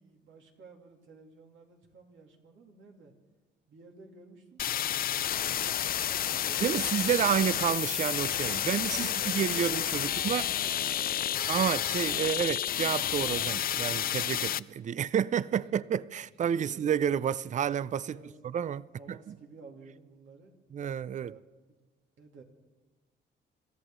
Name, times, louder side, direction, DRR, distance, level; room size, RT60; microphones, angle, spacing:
voice 1, 0.0-3.1 3.7-4.6 5.3-7.3 7.5-7.7 8.6-11.6 15.5-15.8 16.2-17.0 18.0-18.5 18.9-20.6 21.0-21.8 22.2-22.4, right 4 dB, 75° right, 2.8 m, -53 dB
sound 1, 4.6-14.6, left 11 dB, 50° left, 0.4 m, -30 dB
voice 2, 6.6-9.1 9.3-10.5 11.4-18.2 18.4-19.2 20.7-21.3, right 9 dB, 40° right, 0.4 m, -30 dB
26.0 x 14.0 x 3.8 m
cardioid pair, 90°, 20 cm